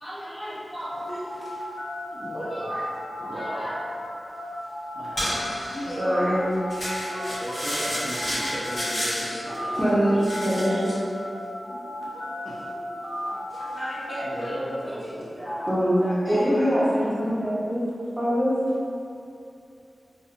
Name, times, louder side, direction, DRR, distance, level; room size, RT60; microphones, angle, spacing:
voice 1, 0.0-1.8 2.3-2.8 3.2-3.7 4.8-4.9 5.7-6.3 6.6-7.6 9.4-9.8 10.5-11.1 12.1-12.3 13.0-17.3, equal, 30° left, -12 dB, 1.2 m, -36 dB
sound 1, 0.8-11.0 11.2-14.5, left 1 dB, 45° left, 0.8 m, -35 dB
voice 2, 2.1-2.7 3.2-3.7 4.9-5.7 7.3-9.8 12.4-12.6 14.2-15.3, equal, 30° right, -9 dB, 0.5 m, -37 dB
sound 2, 5.2-5.9 6.7-9.2 9.5-9.9 10.2-10.9, equal, 70° left, 1.3 m, -30 dB
voice 3, 6.0-6.5 9.2-9.4 9.8-11.0 15.7-16.0 16.3-17.8 18.2-18.5, equal, 15° right, -10 dB, 0.9 m, -23 dB
2.6 x 2.5 x 2.5 m, 2.6 s
cardioid pair, 50°, 0 cm